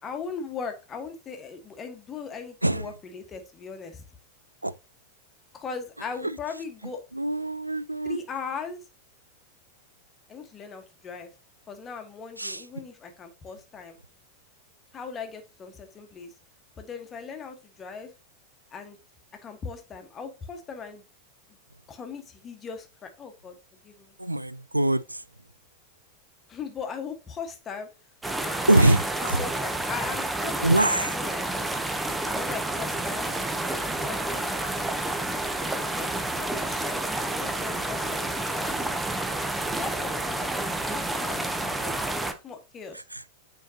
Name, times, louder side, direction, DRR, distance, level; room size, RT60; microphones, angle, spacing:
voice 1, 0.0-4.0 5.5-7.0 8.0-8.8 10.3-11.3 11.7-14.0 14.9-16.3 16.8-18.1 18.7-19.0 19.4-21.0 21.9-23.6 23.8-24.1 26.5-27.9 28.4-28.9 29.2-31.4 32.3-33.3 33.7-35.1 35.7-36.1 36.4-39.1 39.8-40.6 40.9-41.9 42.4-43.0, left 5 dB, 25° left, 1.3 m, -39 dB
voice 2, 7.2-8.2 12.4-12.6 24.2-25.0 28.7-29.4 30.6-31.1, right 1 dB, 85° right, 0.3 m, -23 dB
sound 1, 28.2-42.3, right 2 dB, 5° right, 0.8 m, -29 dB
8.9 x 4.5 x 2.8 m
figure-of-eight pair, 90°, 0 cm